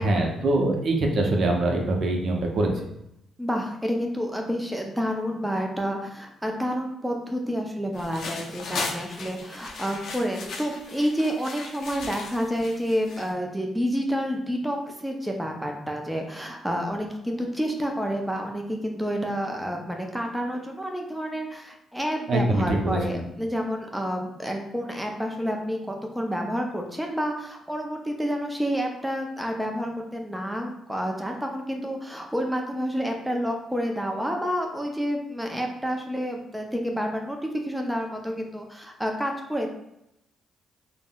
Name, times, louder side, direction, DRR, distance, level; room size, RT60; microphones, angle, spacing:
voice 1, 0.0-2.7 22.3-23.2, right 2 dB, 60° right, 2 dB, 0.5 m, -24 dB
voice 2, 3.4-39.7, equal, 5° right, 2 dB, 0.4 m, -29 dB
sound 1, 7.9-13.3, left 3 dB, 65° left, 0.4 m, -37 dB
3.5 x 2.0 x 2.2 m, 0.82 s
cardioid pair, 90°, 0 cm